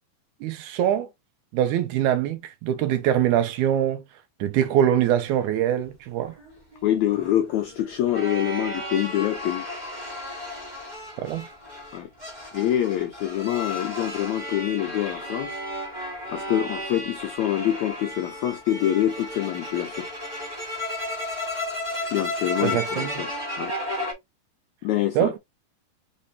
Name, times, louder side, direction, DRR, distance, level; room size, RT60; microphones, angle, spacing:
voice 1, 0.4-1.1 1.5-4.0 4.4-6.3 11.2-11.5 22.6-23.2 25.2-25.4, right 10 dB, 90° right, 1.7 m, -23 dB
sound 1, 6.4-24.1, left 1 dB, 45° right, 0.5 m, -34 dB
voice 2, 6.8-9.7 11.9-12.1 12.5-15.6 16.3-20.1 22.0-23.7 24.8-25.3, left 12 dB, 80° left, 1.6 m, -26 dB
5.0 x 3.2 x 2.7 m
omnidirectional pair, 4.1 m